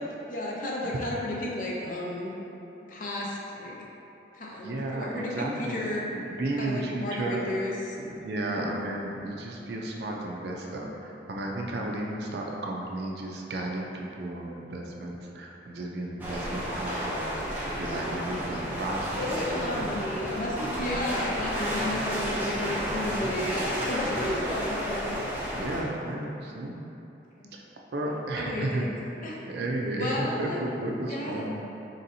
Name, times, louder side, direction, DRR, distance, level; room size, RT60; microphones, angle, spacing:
voice 1, 0.3-2.3 2.9-3.7 4.3-6.0 6.6-7.9 8.4-8.7 19.2-25.2 27.4-27.5 28.4-28.9 29.2-29.4 30.0-30.6 31.1-31.4, left 1 dB, 45° left, -3 dB, 0.5 m, -33 dB
voice 2, 4.6-5.8 6.2-7.4 8.0-17.4 17.7-19.8 20.7-21.0 21.8-22.1 23.1-23.3 24.0-24.2 25.5-26.7 27.5-27.6 27.9-28.9 29.5-31.6, right 1 dB, 70° right, -1 dB, 0.5 m, -33 dB
sound 1, 16.2-25.8, equal, 10° right, 0.5 m, -31 dB
4.1 x 3.5 x 2.7 m, 2.9 s
head